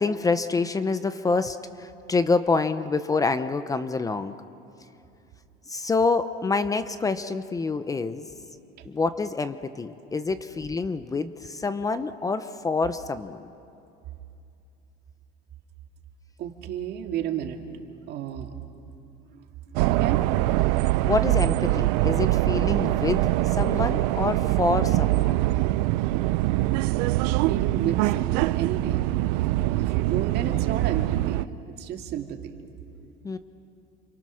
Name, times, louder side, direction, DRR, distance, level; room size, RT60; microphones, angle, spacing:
voice 1, 0.0-4.4 5.7-8.3 8.8-13.5 21.1-25.4 33.2-33.4, left 4 dB, 15° left, 11 dB, 0.8 m, -27 dB
voice 2, 16.4-17.6 18.1-18.5 19.3-20.2 27.5-29.0 29.3-31.5 31.8-32.6, right 9 dB, 55° right, 4 dB, 2.4 m, -32 dB
sound 1, 19.8-31.5, right 18 dB, 85° right, 0.6 m, -23 dB
29.5 x 27.0 x 6.4 m, 2.6 s
cardioid pair, 130°, 20 cm